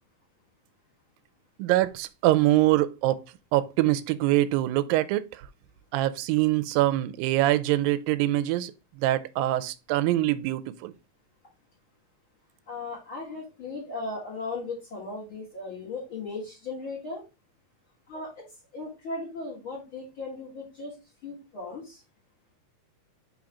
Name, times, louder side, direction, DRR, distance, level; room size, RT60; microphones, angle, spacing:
voice 1, 1.6-3.2 3.5-5.4 5.9-8.7 9.0-10.9, right 15 dB, 85° right, 2.3 m, -24 dB
voice 2, 12.7-17.2 18.1-18.5 18.7-20.9 21.2-22.0, left 3 dB, 45° left, 2.3 m, -37 dB
5.5 x 3.8 x 4.8 m
omnidirectional pair, 4.0 m